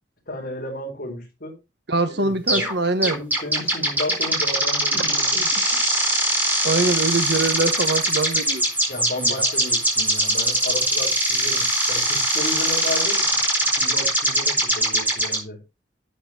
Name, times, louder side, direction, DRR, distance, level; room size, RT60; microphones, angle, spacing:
voice 1, 0.3-1.6 2.1-2.7 3.0-5.8 8.9-13.3 13.7-15.6, left 1 dB, 50° left, 4.6 m, -33 dB
voice 2, 1.9-3.2 6.6-8.6 9.2-9.3, right 3 dB, 65° right, 1.3 m, -23 dB
sound 1, 2.5-2.7 3.0-15.4, right 1 dB, 10° right, 4.6 m, -21 dB
11.5 x 9.0 x 3.0 m
head